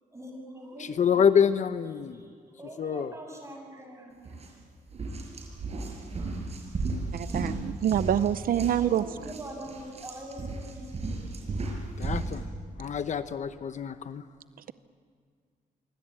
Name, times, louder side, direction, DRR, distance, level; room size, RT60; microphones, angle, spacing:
voice 1, 0.1-1.4 2.0-4.6 8.8-11.2, right 1 dB, 20° right, 2 dB, 7.4 m, -44 dB
voice 2, 0.8-2.2 2.8-3.1 12.0-12.4 12.8-14.2, left 7 dB, 55° left, 11 dB, 0.9 m, -26 dB
sound 1, 4.3-4.5 4.9-12.4, right 3 dB, 45° right, 5.9 m, -35 dB
voice 3, 7.1-9.0, right 10 dB, 75° right, 13 dB, 0.6 m, -26 dB
26.5 x 24.0 x 8.8 m, 2.1 s
wide cardioid pair, 125°, 15 cm